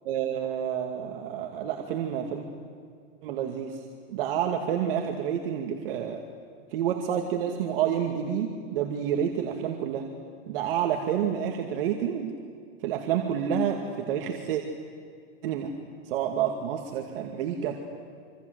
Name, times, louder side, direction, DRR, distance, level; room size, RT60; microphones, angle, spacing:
voice 1, 0.1-2.5 3.2-3.8 4.1-6.2 6.7-10.1 10.5-12.3 12.8-14.6 15.4-15.7 16.1-17.8, right 9 dB, 60° right, 2 dB, 2.5 m, -29 dB
27.0 x 26.5 x 8.1 m, 2.2 s
supercardioid pair, 155°, 33 cm